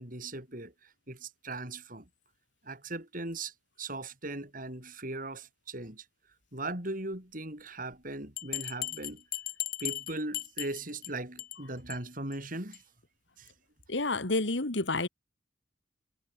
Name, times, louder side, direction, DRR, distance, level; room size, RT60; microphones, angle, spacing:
voice 1, 0.0-2.1 2.6-6.0 6.5-9.2 9.8-12.8 13.4-13.5, right 2 dB, 50° right, 7.2 m, -39 dB
Bell, 8.4-11.1 11.4-11.6 11.9-12.0 12.3-12.4 12.7-12.8, left 13 dB, 55° left, 2.7 m, -36 dB
voice 2, 13.9-15.1, left 2 dB, 80° left, 2.0 m, -29 dB
head